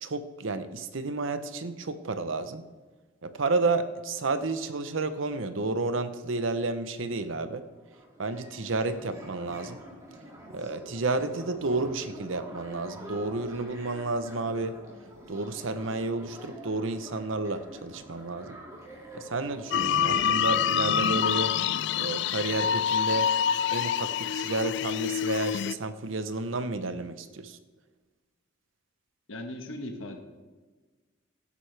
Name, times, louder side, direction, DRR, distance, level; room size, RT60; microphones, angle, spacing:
voice 1, 0.0-2.7 3.2-7.7 8.2-9.8 10.5-14.8 15.3-18.6 19.1-21.6 21.9-23.3 23.7-27.6, right 3 dB, 80° right, 11 dB, 0.8 m, -31 dB
sound 1, 7.7-22.3, right 1 dB, 15° right, 2.4 m, -47 dB
sound 2, 19.7-25.7, left 8 dB, 60° left, 0.3 m, -26 dB
voice 2, 29.3-30.2, left 1 dB, 85° left, 4 dB, 1.2 m, -38 dB
16.5 x 10.5 x 3.4 m, 1.3 s
head